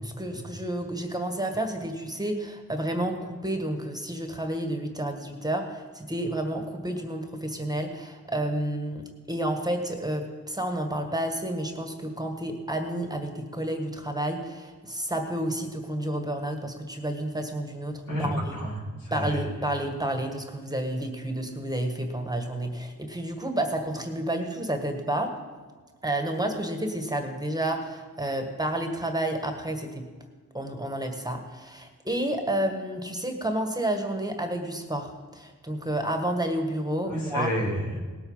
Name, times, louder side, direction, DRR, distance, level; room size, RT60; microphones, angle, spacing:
voice 1, 0.2-18.6 19.1-25.3 26.0-30.1 30.5-37.5, right 1 dB, 10° right, 5 dB, 1.6 m, -30 dB
voice 2, 18.1-19.4 37.1-38.0, equal, 85° left, -4 dB, 3.7 m, -30 dB
18.0 x 8.3 x 5.6 m, 1.4 s
cardioid pair, 65°, 33 cm